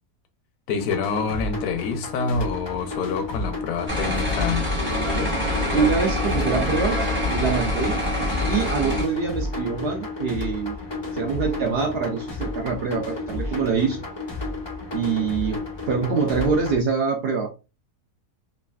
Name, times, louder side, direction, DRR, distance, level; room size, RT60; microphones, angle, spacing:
voice 1, 0.7-4.7, left 5 dB, 70° left, 0.9 m, -27 dB
sound 1, 0.8-16.8, left 3 dB, 45° left, 0.3 m, -32 dB
sound 2, 3.9-9.0, left 1 dB, 10° right, 0.7 m, -25 dB
voice 2, 5.7-7.0 7.3-8.0 8.5-10.8 11.1-14.1 14.9-17.5, right 5 dB, 75° right, 0.5 m, -25 dB
3.1 x 2.5 x 2.2 m
omnidirectional pair, 1.7 m